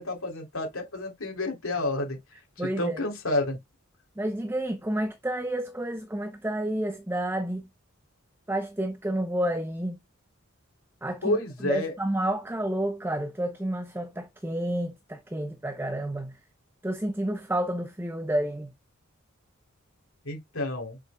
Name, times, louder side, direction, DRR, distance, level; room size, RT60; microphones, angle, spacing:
voice 1, 0.0-2.2 2.6-3.6 11.2-11.9 20.2-21.0, left 2 dB, 85° left, 3.4 m, -30 dB
voice 2, 2.6-3.1 4.2-7.7 8.5-10.0 11.0-11.4 11.6-16.4 16.8-18.7, right 1 dB, 10° right, 0.7 m, -30 dB
7.3 x 6.7 x 2.3 m
head